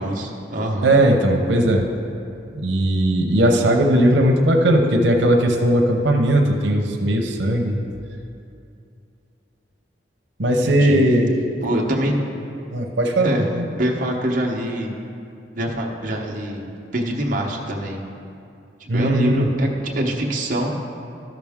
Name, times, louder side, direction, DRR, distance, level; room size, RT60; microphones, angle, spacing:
voice 1, 0.0-0.9 10.6-11.0 11.6-12.1 13.2-13.5 13.8-14.9 15.5-16.7 16.9-18.0 18.9-20.7, right 1 dB, 45° right, -1 dB, 0.9 m, -24 dB
voice 2, 0.8-1.9 2.5-7.8 10.4-11.3 12.7-13.7 18.9-19.5, right 1 dB, 90° right, 2 dB, 0.8 m, -18 dB
13.0 x 6.0 x 3.6 m, 2.6 s
head